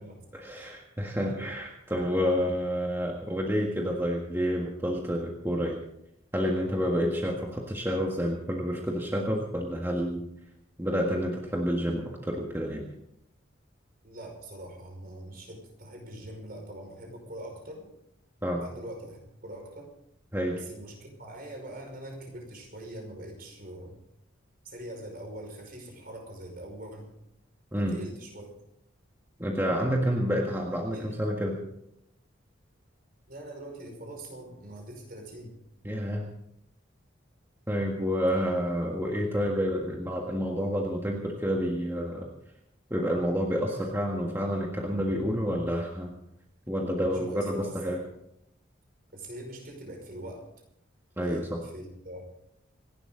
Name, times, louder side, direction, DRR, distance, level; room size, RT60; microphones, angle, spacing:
voice 1, 0.3-5.8 6.3-10.2 10.8-12.9 18.4-18.6 20.3-20.6 27.7-28.0 29.4-31.6 35.8-36.2 37.7-42.3 42.9-46.1 46.7-48.0 51.2-51.6, equal, 10° right, -1 dB, 1.7 m, -29 dB
voice 2, 14.0-17.9 18.6-19.9 20.5-24.0 24.6-27.1 27.7-28.5 29.9-30.4 30.9-31.2 33.3-35.5 46.9-48.0 49.1-50.5 51.2-52.2, right 1 dB, 45° right, 2 dB, 5.3 m, -43 dB
27.0 x 12.0 x 3.9 m, 0.78 s
head